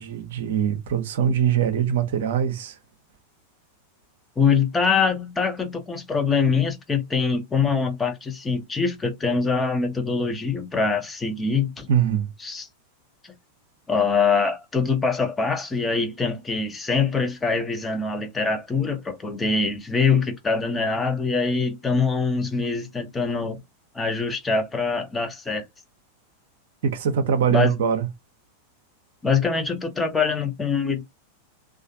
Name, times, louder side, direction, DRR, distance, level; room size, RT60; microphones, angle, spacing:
voice 1, 0.0-2.8 11.9-12.3 26.8-28.1, right 8 dB, 55° right, 0.7 m, -22 dB
voice 2, 4.4-11.9 12.4-12.7 13.9-23.6 23.9-25.6 27.5-27.7 29.2-31.0, left 5 dB, 15° left, 0.7 m, -24 dB
3.2 x 2.4 x 2.6 m
figure-of-eight pair, 90°, 0 cm